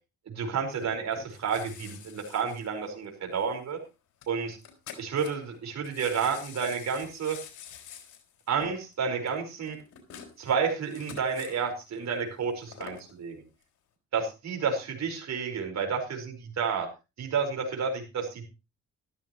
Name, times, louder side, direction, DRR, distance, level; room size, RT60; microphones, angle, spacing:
voice 1, 0.3-3.8 4.3-4.6 5.0-7.4 8.5-9.8 10.4-13.3 14.1-16.9 17.2-18.5, right 6 dB, 60° right, 3 dB, 5.0 m, -30 dB
sound 1, 0.7-3.5 3.7-3.9 4.2-4.3 4.5-5.6 5.8-11.7 12.4-13.1 13.6-13.7, left 8 dB, 80° left, 3.7 m, -47 dB
14.5 x 13.0 x 3.1 m, 0.28 s
cardioid pair, 90°, 30 cm